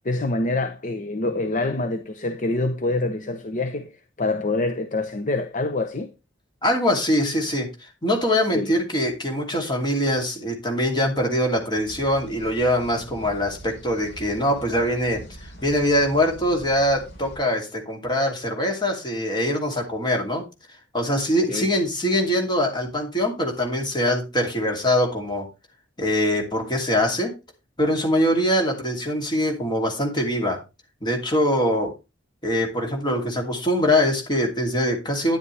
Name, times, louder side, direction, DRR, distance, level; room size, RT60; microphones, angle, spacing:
voice 1, 0.0-6.1 8.5-8.7 21.5-21.7, left 2 dB, 40° left, 0.7 m, -26 dB
voice 2, 6.6-20.4 20.9-25.5 26.0-27.3 27.8-30.6 31.0-31.9 32.4-35.4, equal, 25° left, 2.8 m, -23 dB
sound 1, 11.8-17.4, right 1 dB, 60° left, 7.4 m, -43 dB
10.0 x 9.8 x 3.3 m
head